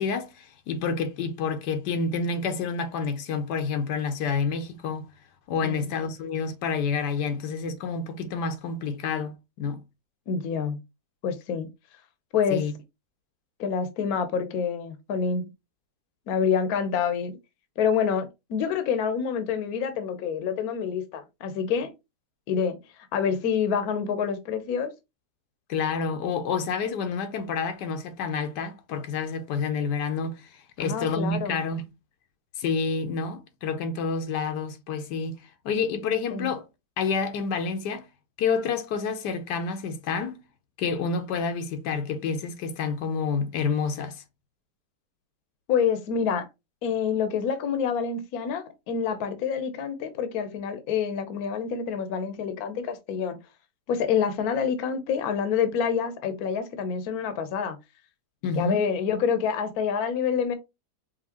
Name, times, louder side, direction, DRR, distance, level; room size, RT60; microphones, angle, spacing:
voice 1, 0.0-5.0 5.5-9.8 12.5-12.7 25.7-31.9 32.6-35.4 35.6-36.6 37.0-38.1 38.4-40.4 40.8-44.2 58.4-58.8, left 5 dB, 85° left, 1.3 m, -29 dB
voice 2, 5.6-5.9 10.3-10.8 11.2-11.7 12.3-12.6 13.6-15.5 16.3-17.4 17.8-21.9 22.5-22.8 23.1-24.9 30.8-31.6 36.3-36.5 45.7-46.5 46.8-53.4 53.9-57.8 58.6-60.6, left 7 dB, 70° left, 1.2 m, -27 dB
5.1 x 2.7 x 2.8 m
omnidirectional pair, 1.8 m